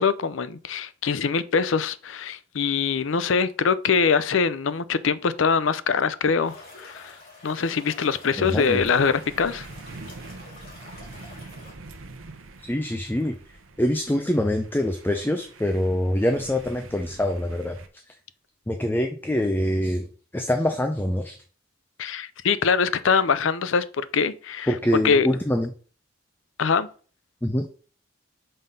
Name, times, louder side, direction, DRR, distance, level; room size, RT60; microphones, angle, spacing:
voice 1, 0.0-7.2 7.4-9.7 22.0-24.7 25.0-25.3 26.6-26.9, left 5 dB, 70° left, 0.5 m, -23 dB
sound 1, 6.4-11.7, left 2 dB, 45° left, 3.4 m, -47 dB
voice 2, 8.4-8.8 12.6-13.4 13.8-17.8 18.7-20.1 20.3-21.4 24.7-25.7 27.4-27.7, left 1 dB, 10° left, 0.5 m, -24 dB
sound 2, 8.6-17.9, right 3 dB, 85° right, 0.8 m, -44 dB
5.5 x 3.8 x 5.5 m
head